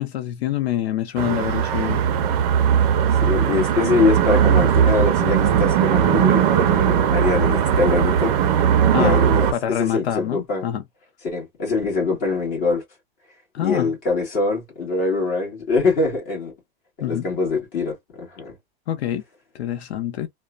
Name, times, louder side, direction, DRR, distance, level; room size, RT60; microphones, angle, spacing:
voice 1, 0.0-2.1 8.9-9.2 9.5-10.8 13.5-13.9 17.0-17.3 18.9-19.2 19.5-20.3, left 11 dB, 85° left, 0.7 m, -26 dB
sound 1, 1.2-9.5, right 9 dB, 40° right, 0.6 m, -18 dB
voice 2, 3.2-10.7 11.2-12.8 13.6-16.5 17.1-18.5, left 4 dB, 25° left, 1.7 m, -23 dB
3.0 x 2.2 x 2.4 m
supercardioid pair, 160°, 31 cm